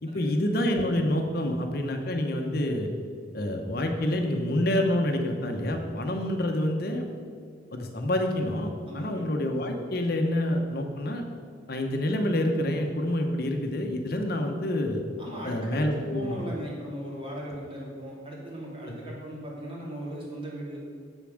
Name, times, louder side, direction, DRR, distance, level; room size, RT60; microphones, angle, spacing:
voice 1, 0.0-2.9 3.3-7.1 7.7-11.2 11.7-15.0 15.4-16.4 17.4-17.5 18.8-19.0, left 1 dB, 55° left, 4 dB, 1.0 m, -27 dB
voice 2, 8.9-9.2 15.2-20.8, equal, 30° right, -4 dB, 2.5 m, -38 dB
8.3 x 7.0 x 6.4 m, 2.1 s
head